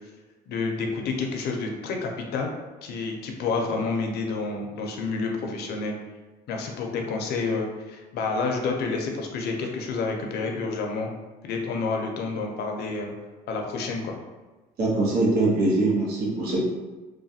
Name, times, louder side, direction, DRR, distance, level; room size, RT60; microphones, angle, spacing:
voice 1, 0.5-2.5 2.8-5.9 6.5-11.1 11.4-13.1 13.5-14.1, left 4 dB, 75° left, 2 dB, 0.6 m, -29 dB
voice 2, 14.8-16.6, right 2 dB, 65° right, -4 dB, 1.0 m, -22 dB
3.1 x 2.2 x 2.7 m, 1.2 s
cardioid pair, 110°, 17 cm